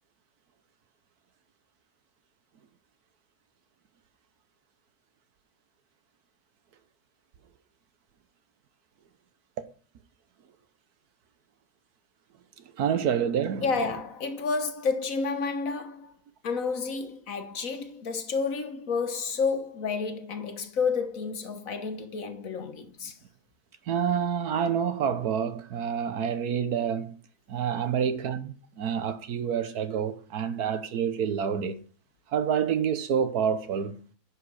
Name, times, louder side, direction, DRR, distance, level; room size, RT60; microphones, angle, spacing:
voice 1, 12.8-13.6 23.9-27.1 27.5-31.8 32.3-34.0, right 8 dB, 70° right, 1.4 m, -28 dB
voice 2, 13.6-16.2 16.4-23.2, left 4 dB, 60° left, 1.5 m, -30 dB
11.0 x 4.9 x 6.4 m
omnidirectional pair, 1.7 m